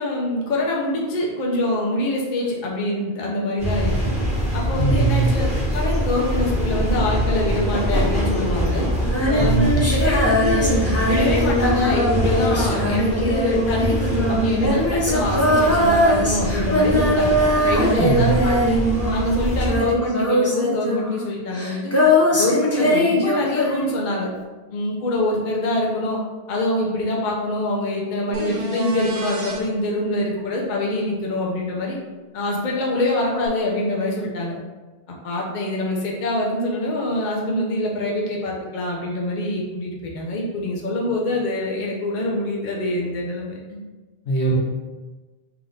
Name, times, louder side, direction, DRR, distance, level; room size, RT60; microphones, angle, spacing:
voice 1, 0.0-3.9 4.5-5.5 5.7-8.9 9.3-17.4 17.6-18.8 19.1-21.9 22.3-24.3 24.7-26.2 26.5-32.0 32.3-34.5 35.2-43.9, left 1 dB, 50° left, -3 dB, 0.8 m, -25 dB
sound 1, 3.6-19.8, equal, 5° right, 1.2 m, -24 dB
voice 2, 4.8-5.3 9.4-9.8 18.0-18.3 44.2-44.6, right 4 dB, 80° left, -3 dB, 1.3 m, -21 dB
Female singing, 9.0-19.3 19.6-24.1, equal, 20° left, 0.5 m, -21 dB
sound 2, 28.3-29.6 33.5-33.6, right 1 dB, 45° right, 0.7 m, -30 dB
3.5 x 2.9 x 3.9 m, 1.2 s
omnidirectional pair, 1.1 m